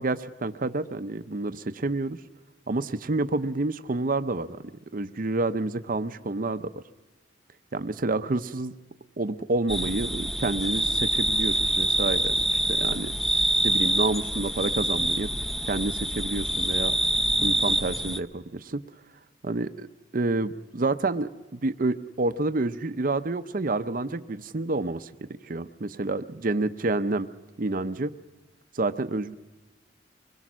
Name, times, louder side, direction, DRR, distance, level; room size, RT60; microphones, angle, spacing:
voice 1, 0.0-2.2 2.7-4.6 4.9-6.7 7.7-8.7 9.2-13.1 13.6-15.3 15.7-17.0 17.4-18.8 19.4-19.9 20.1-25.1 25.5-27.3 27.6-28.1 28.8-29.3, right 2 dB, 45° right, 11 dB, 0.7 m, -28 dB
sound 1, 9.7-18.2, right 1 dB, ahead, 0.7 m, -26 dB
25.0 x 21.5 x 6.2 m, 1.2 s
head